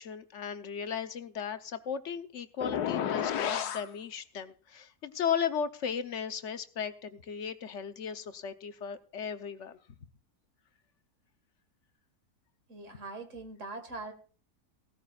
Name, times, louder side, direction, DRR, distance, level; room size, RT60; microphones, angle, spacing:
voice 1, 0.0-9.8, left 7 dB, 55° left, 9 dB, 1.0 m, -36 dB
sound 1, 2.6-3.9, left 9 dB, 80° left, 1.4 m, -31 dB
voice 2, 12.7-14.1, right 3 dB, 50° right, 7 dB, 2.2 m, -42 dB
18.0 x 13.5 x 2.4 m, 0.38 s
omnidirectional pair, 1.7 m